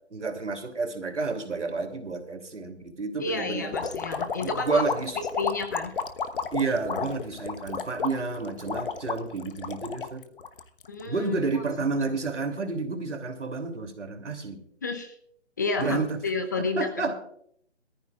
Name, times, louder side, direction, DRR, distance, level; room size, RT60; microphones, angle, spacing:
voice 1, 0.1-3.8 4.4-5.2 6.5-10.2 11.1-14.6 15.8-16.2 16.8-17.2, right 3 dB, 85° right, 6 dB, 3.0 m, -30 dB
voice 2, 3.2-4.8 5.4-5.9 10.9-11.3 11.5-11.6 14.8-15.1 15.6-16.9, left 3 dB, 15° left, 7 dB, 0.6 m, -30 dB
sound 1, 3.7-11.0, left 5 dB, 50° left, 1.1 m, -32 dB
21.5 x 14.0 x 2.4 m, 0.64 s
figure-of-eight pair, 155°, 35 cm